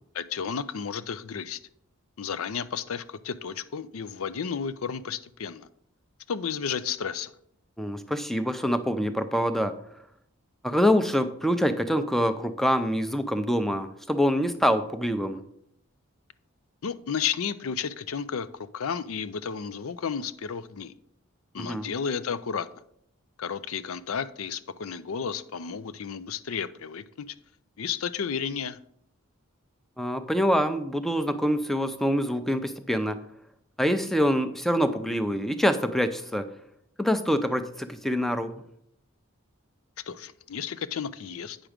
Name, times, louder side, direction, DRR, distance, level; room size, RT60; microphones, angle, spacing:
voice 1, 0.1-1.6 2.2-5.7 6.3-7.3 16.8-20.9 21.5-22.7 23.4-27.3 27.8-28.8 40.1-41.6, left 6 dB, 85° left, 0.5 m, -32 dB
voice 2, 7.8-9.8 10.6-15.4 21.6-21.9 30.0-33.2 33.8-36.5 37.0-38.6, equal, ahead, 0.5 m, -25 dB
8.8 x 6.0 x 5.1 m
head